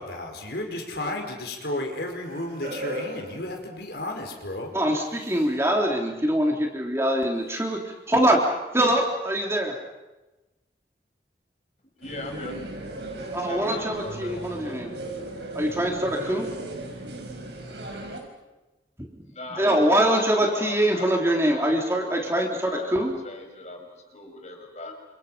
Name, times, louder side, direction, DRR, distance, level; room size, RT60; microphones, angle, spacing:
voice 1, 0.0-4.7, left 1 dB, 70° left, 3 dB, 5.1 m, -33 dB
sound 1, 0.9-4.3 5.0-5.7 7.5-7.6, right 1 dB, 55° right, 4.2 m, -39 dB
voice 2, 4.7-8.4 8.7-9.7 13.3-14.9 15.5-16.5 19.6-23.1, right 1 dB, 15° right, 0 dB, 3.6 m, -23 dB
voice 3, 12.0-12.6 13.2-14.8 19.3-20.0 20.3-21.1 21.5-22.4 22.7-23.0 23.2-24.9, left 2 dB, 40° left, 3 dB, 5.4 m, -40 dB
sound 2, 12.0-18.2, right 2 dB, 75° right, 5.6 m, -36 dB
29.5 x 27.0 x 5.8 m, 1.1 s
head